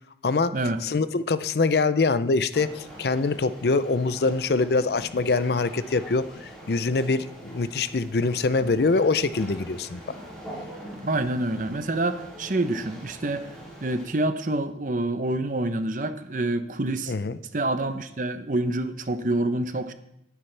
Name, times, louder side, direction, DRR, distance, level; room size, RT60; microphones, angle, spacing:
voice 1, 0.2-0.6 0.8-10.0 17.1-17.4, left 3 dB, 65° left, 14 dB, 0.5 m, -24 dB
sound 1, 2.5-14.0, equal, 5° left, 4.3 m, -43 dB
voice 2, 10.9-13.5 13.8-17.1 17.5-19.9, right 2 dB, 45° right, 10 dB, 0.8 m, -27 dB
19.0 x 9.6 x 3.4 m, 0.80 s
head